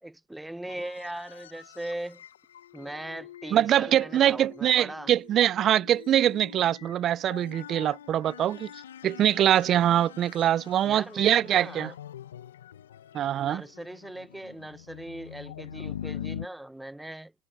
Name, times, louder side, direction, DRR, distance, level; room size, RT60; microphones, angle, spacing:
voice 1, 0.0-2.2 2.7-5.1 10.8-11.9 13.4-17.3, right 1 dB, 5° right, 0.9 m, -39 dB
sound 1, 0.7-16.5, left 10 dB, 90° left, 0.8 m, -44 dB
voice 2, 3.5-8.7 9.0-11.9 13.1-13.6, right 11 dB, 40° right, 0.4 m, -23 dB
hypercardioid pair, 95°, 0 cm